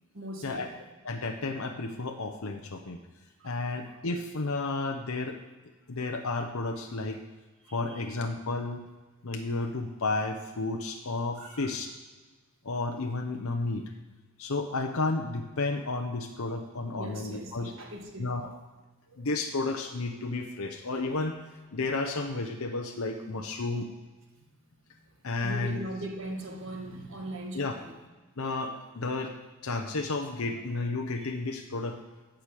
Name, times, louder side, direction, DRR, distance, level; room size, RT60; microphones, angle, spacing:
voice 1, 0.1-0.7 3.4-4.0 7.6-8.2 11.4-11.7 17.0-18.3 19.1-19.3 25.4-28.0 30.7-30.9, right 1 dB, 60° right, 2 dB, 1.9 m, -40 dB
voice 2, 1.0-3.0 3.4-5.4 5.9-7.2 7.7-8.9 9.2-11.9 12.6-13.8 14.4-17.7 18.2-18.5 19.2-21.4 21.7-23.9 25.2-25.8 27.5-27.8 28.4-29.3 29.6-32.0, left 3 dB, 75° left, 3 dB, 0.8 m, -32 dB
14.5 x 5.0 x 7.5 m, 1.3 s
head